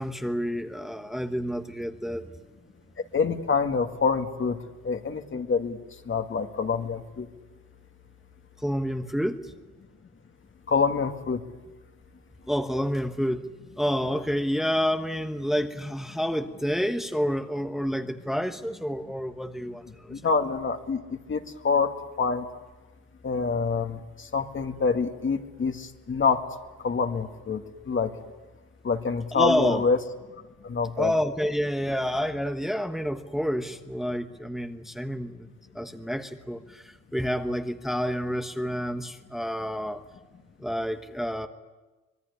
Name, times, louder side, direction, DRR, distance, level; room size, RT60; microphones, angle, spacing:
voice 1, 0.0-2.4 8.6-9.5 12.5-13.4 13.8-20.2 29.3-29.8 31.0-35.5 35.7-40.0 40.6-41.5, equal, ahead, 6 dB, 1.3 m, -29 dB
voice 2, 3.1-4.6 4.8-5.8 6.1-7.3 10.7-11.4 20.1-21.0 21.3-21.9 22.2-22.5 23.2-26.4 26.8-28.1 28.8-30.0 30.6-31.1, left 5 dB, 40° left, 6 dB, 2.1 m, -26 dB
25.5 x 21.0 x 9.9 m, 1.2 s
cardioid pair, 90°, 30 cm